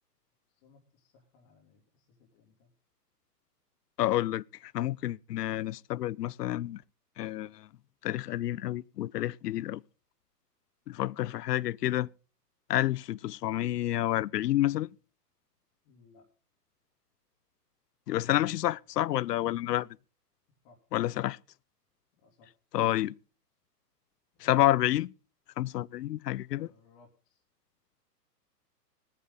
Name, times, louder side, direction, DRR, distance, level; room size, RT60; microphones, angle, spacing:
voice 1, 0.5-2.7 15.8-16.2 20.6-20.8 22.1-22.5 26.5-27.4, left 4 dB, 35° left, 3.1 m, -62 dB
voice 2, 4.0-6.8 7.2-7.7 8.0-9.8 10.9-12.1 12.7-14.9 18.1-19.9 20.9-21.4 22.7-23.1 24.4-25.1 25.6-26.7, left 14 dB, 75° left, 0.6 m, -29 dB
19.0 x 9.8 x 3.9 m
hypercardioid pair, 125°, 48 cm